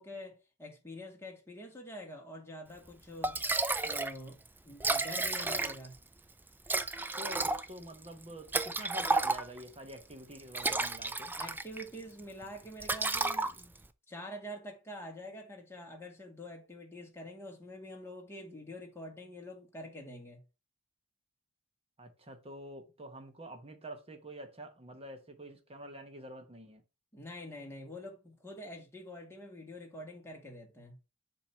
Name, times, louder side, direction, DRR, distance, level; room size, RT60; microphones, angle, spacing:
voice 1, 0.0-3.4 3.8-6.0 11.4-13.7 14.1-20.4 27.1-31.0, left 1 dB, 10° left, 1.9 m, -46 dB
Liquid, 2.9-3.0 3.2-4.2 4.4-4.5 4.7-6.0 6.7-9.7 10.3-11.9 12.2-12.4 12.8-13.9, right 3 dB, 10° right, 0.4 m, -32 dB
voice 2, 7.2-11.3 22.0-26.8, right 1 dB, 30° right, 1.1 m, -47 dB
7.3 x 2.9 x 5.6 m
head